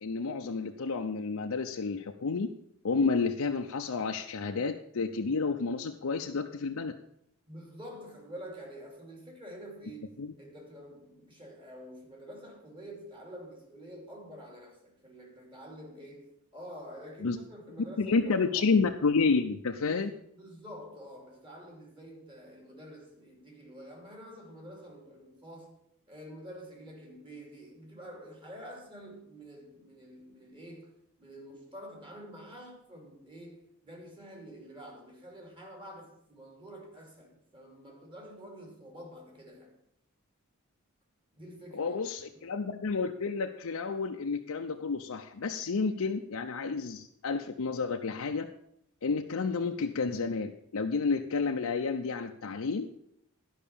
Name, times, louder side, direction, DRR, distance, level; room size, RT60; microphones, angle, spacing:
voice 1, 0.0-2.5 2.8-6.9 10.2-10.3 17.2-17.4 18.0-20.1 41.7-48.5 49.0-52.9, left 4 dB, 75° left, 0.6 m, -30 dB
voice 2, 7.5-18.7 19.9-25.7 26.1-39.8 41.3-42.5, equal, 25° right, 2.8 m, -48 dB
12.0 x 5.6 x 7.1 m
head